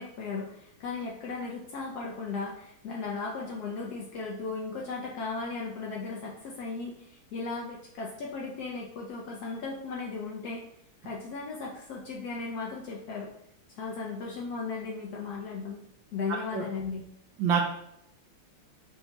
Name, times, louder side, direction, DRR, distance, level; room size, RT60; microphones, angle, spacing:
voice 1, 0.0-10.6 11.0-13.3 13.7-15.8 16.1-17.0, left 4 dB, 85° left, -2 dB, 0.8 m, -36 dB
voice 2, 16.3-16.6 17.4-17.6, right 6 dB, 75° right, 0 dB, 1.3 m, -27 dB
5.3 x 2.2 x 2.9 m, 0.77 s
omnidirectional pair, 2.3 m